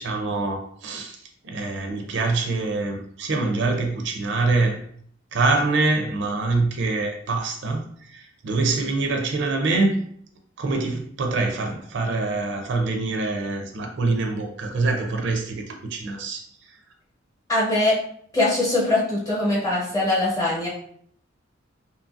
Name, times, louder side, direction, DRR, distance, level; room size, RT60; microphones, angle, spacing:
voice 1, 0.0-4.8 5.3-10.0 10.6-16.8, right 3 dB, 60° right, 3 dB, 0.4 m, -25 dB
voice 2, 17.5-18.0 18.3-20.7, left 2 dB, 15° left, -5 dB, 0.9 m, -22 dB
2.7 x 2.5 x 2.4 m, 0.62 s
head